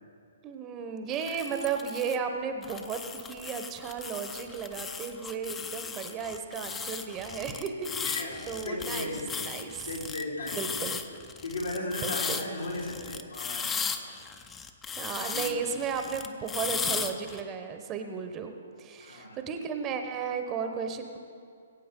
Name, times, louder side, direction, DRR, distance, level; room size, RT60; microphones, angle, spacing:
voice 1, 0.4-9.9 10.5-11.0 12.0-12.4 14.9-18.5 18.8-21.2, right 6 dB, 25° right, 6 dB, 1.0 m, -34 dB
sound 1, 1.1-2.2 2.6-17.4, left 6 dB, 15° left, 0.7 m, -36 dB
voice 2, 8.0-9.3 9.8-10.6 11.4-13.8 15.0-15.5 19.0-19.4, left 2 dB, 80° left, -4 dB, 3.2 m, -36 dB
21.0 x 8.5 x 3.8 m, 2.4 s
figure-of-eight pair, 125°, 0 cm